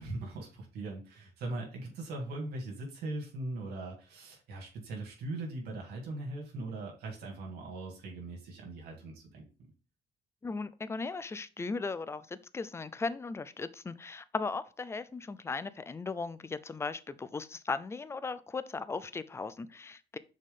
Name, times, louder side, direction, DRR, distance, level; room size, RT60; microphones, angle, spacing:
voice 1, 0.0-9.5, right 2 dB, 75° right, 2.2 m, -40 dB
voice 2, 10.4-20.2, left 4 dB, 15° left, 0.4 m, -37 dB
6.2 x 4.3 x 3.7 m
cardioid pair, 110°, 17 cm